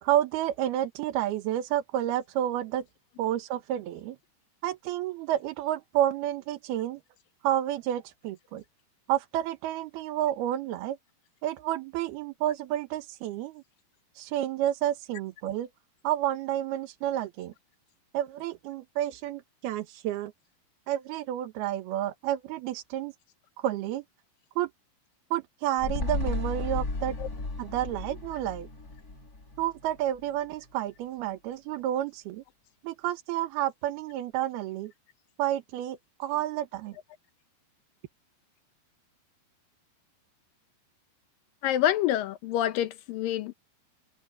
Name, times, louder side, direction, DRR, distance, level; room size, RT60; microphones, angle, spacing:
voice 1, 0.0-2.9 3.2-4.2 4.6-7.0 7.4-8.6 9.1-11.0 11.4-13.6 14.1-15.7 16.0-17.5 18.1-20.3 20.9-23.1 23.6-24.0 24.6-24.7 25.3-27.2 27.6-28.7 29.6-32.4 32.8-34.9 35.4-37.0, right 12 dB, 75° right, 3.1 m, -30 dB
sound 1, 25.8-30.3 30.6-30.7, left 2 dB, 25° left, 2.9 m, -34 dB
voice 2, 41.6-43.5, left 12 dB, 70° left, 2.4 m, -27 dB
omnidirectional pair, 4.6 m